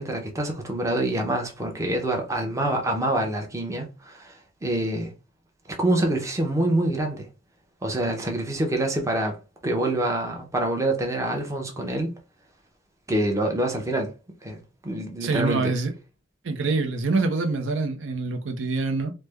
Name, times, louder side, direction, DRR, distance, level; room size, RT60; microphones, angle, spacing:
voice 1, 0.0-5.1 5.7-7.3 7.8-9.4 9.6-12.1 13.1-14.1 14.4-15.7, right 1 dB, 15° right, 0.7 m, -26 dB
voice 2, 15.2-15.9 16.4-19.1, right 3 dB, 70° right, 0.6 m, -25 dB
3.2 x 2.1 x 3.3 m
head